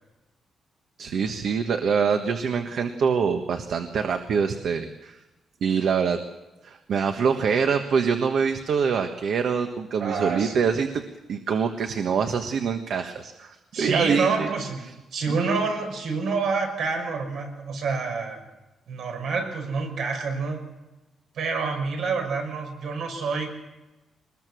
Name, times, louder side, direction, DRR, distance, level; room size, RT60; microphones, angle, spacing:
voice 1, 1.0-5.2 5.6-6.2 6.6-11.0 11.3-14.5, right 6 dB, 65° right, 6 dB, 1.4 m, -25 dB
voice 2, 10.0-10.6 13.7-18.4 18.9-20.6 21.3-23.5, right 4 dB, 80° right, 3 dB, 6.1 m, -27 dB
24.0 x 21.0 x 6.3 m, 1.1 s
wide cardioid pair, 160°, 0 cm